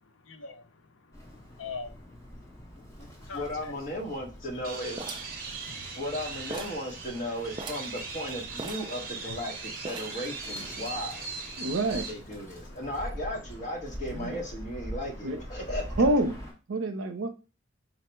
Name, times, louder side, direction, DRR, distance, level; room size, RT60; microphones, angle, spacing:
voice 1, 0.3-0.7 1.6-1.9 3.2-3.7 4.8-4.9 5.5-6.0 11.6-11.7 12.7-12.8, left 5 dB, 80° left, 0.6 m, -41 dB
Bird, 1.1-16.5, equal, 15° left, 0.9 m, -44 dB
voice 2, 3.3-5.0 5.9-11.3 11.9-16.0, left 1 dB, 40° left, 1.0 m, -36 dB
sound 1, 4.6-12.1, right 4 dB, 45° right, 0.8 m, -39 dB
sound 2, 5.0-6.2 6.5-6.9 7.2-7.3 7.5-8.0 8.6-9.4 9.8-10.3, right 3 dB, 25° right, 0.3 m, -41 dB
voice 3, 11.6-12.1 14.1-14.4 15.2-15.4 16.0-16.4 16.7-17.3, right 1 dB, 85° right, 0.6 m, -27 dB
4.0 x 2.0 x 4.4 m
head